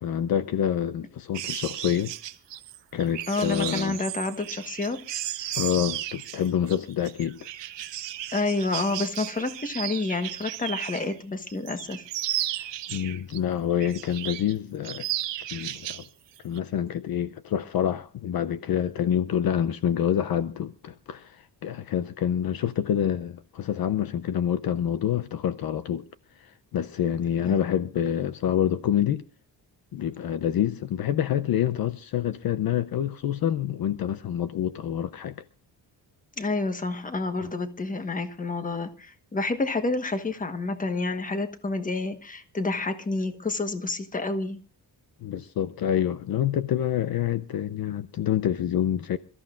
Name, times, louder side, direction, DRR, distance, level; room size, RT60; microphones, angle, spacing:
voice 1, 0.0-2.1 2.9-4.0 5.6-7.4 12.6-15.1 15.5-16.0 16.4-26.0 26.4-29.2 29.9-35.3 37.4-37.5 45.2-49.2, left 10 dB, 55° left, 0.6 m, -27 dB
sound 1, 1.3-11.2 11.5-13.4 13.8-14.5 14.8-16.1 16.4-16.6, right 13 dB, 80° right, 1.1 m, -34 dB
voice 2, 3.3-5.0 5.4-5.6 8.3-12.0 27.4-27.6 36.4-44.6, left 3 dB, 20° left, 1.3 m, -29 dB
27.5 x 14.0 x 2.5 m
cardioid pair, 155°, 42 cm